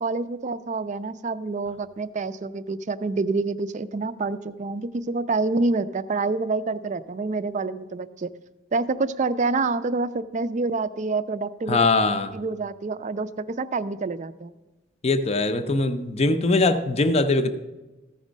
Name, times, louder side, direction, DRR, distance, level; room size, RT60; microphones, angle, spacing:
voice 1, 0.0-8.3 8.7-11.8 12.3-14.5, right 3 dB, 35° right, 13 dB, 0.4 m, -27 dB
voice 2, 11.7-12.3 15.0-17.5, left 3 dB, 30° left, 7 dB, 0.5 m, -21 dB
14.5 x 5.3 x 5.1 m, 1.1 s
head